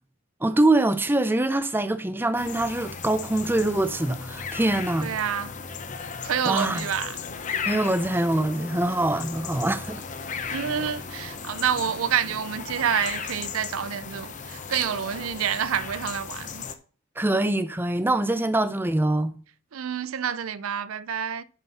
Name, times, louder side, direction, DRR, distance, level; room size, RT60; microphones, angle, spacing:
voice 1, 0.4-5.1 6.4-6.8 7.7-10.0 17.2-19.3, right 2 dB, 10° right, 0.6 m, -24 dB
sound 1, 2.4-16.8, left 5 dB, 35° left, 0.8 m, -36 dB
voice 2, 5.0-5.5 6.2-7.2 10.5-16.6 19.7-21.4, right 8 dB, 85° right, 0.5 m, -28 dB
7.1 x 6.2 x 5.5 m
head